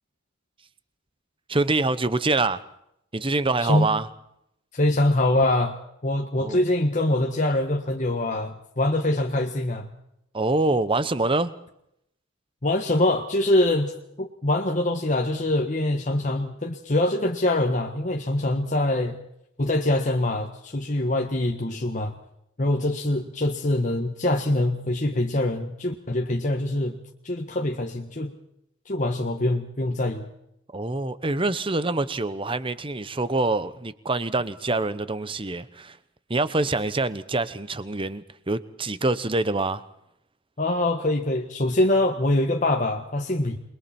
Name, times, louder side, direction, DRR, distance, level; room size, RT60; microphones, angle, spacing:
voice 1, 1.5-2.6 3.1-4.1 6.3-6.6 10.3-11.5 30.7-36.0 36.3-39.8, right 2 dB, 25° right, 14 dB, 1.1 m, -25 dB
voice 2, 4.7-5.8 6.0-9.9 12.6-13.9 14.2-19.2 19.6-22.2 22.6-28.3 28.8-30.3 40.6-43.6, left 1 dB, 40° left, 2 dB, 1.4 m, -24 dB
29.0 x 22.0 x 4.5 m, 0.76 s
head